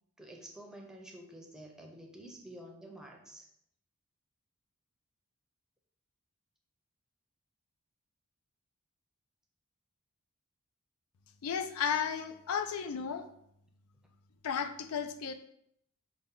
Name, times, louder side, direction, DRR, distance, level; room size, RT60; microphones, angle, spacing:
voice 1, 0.2-3.5, right 1 dB, 5° right, 0 dB, 0.6 m, -50 dB
voice 2, 11.4-13.3 14.4-15.3, left 7 dB, 75° left, 8 dB, 0.4 m, -34 dB
5.4 x 2.2 x 3.7 m, 0.73 s
head